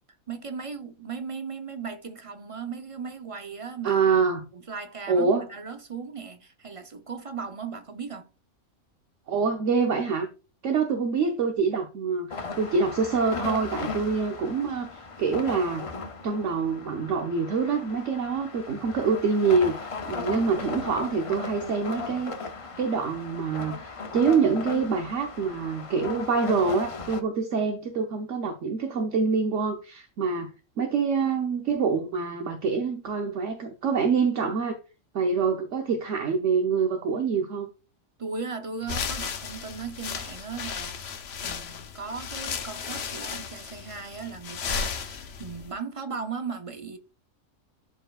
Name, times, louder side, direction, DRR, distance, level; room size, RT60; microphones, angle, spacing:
voice 1, 0.3-4.0 4.5-8.3 38.2-41.1 41.4-47.0, right 5 dB, 35° right, 0.6 m, -37 dB
voice 2, 3.8-4.5 5.1-5.5 9.3-10.3 10.6-15.9 16.2-22.3 22.8-30.5 30.8-34.8 35.1-37.7, right 5 dB, 65° right, 1.2 m, -26 dB
sound 1, 12.3-27.2, left 4 dB, 35° left, 0.5 m, -37 dB
sound 2, 38.8-45.7, left 6 dB, 55° left, 0.9 m, -35 dB
12.5 x 4.4 x 2.4 m
omnidirectional pair, 1.4 m